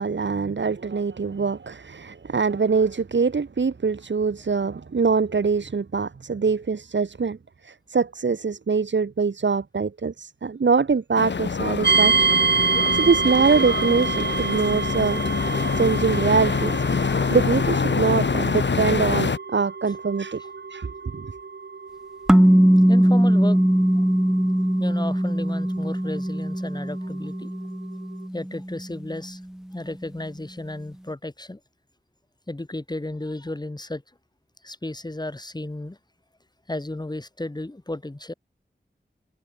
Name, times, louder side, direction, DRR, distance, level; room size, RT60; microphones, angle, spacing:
voice 1, 0.0-7.4 7.6-15.2 15.8-20.4 20.7-21.3, right 5 dB, 85° right, 2.5 m, -24 dB
sound 1, 11.2-19.4, left 5 dB, 80° left, 1.3 m, -25 dB
sound 2, 11.8-26.7, right 5 dB, 70° right, 1.3 m, -27 dB
sound 3, 22.3-28.8, equal, 5° right, 0.4 m, -20 dB
voice 2, 22.9-23.6 24.8-27.5 28.3-29.4 29.7-31.6 32.5-34.0 34.6-36.0 36.7-38.3, left 1 dB, 20° left, 2.3 m, -33 dB
wide cardioid pair, 75°, 18 cm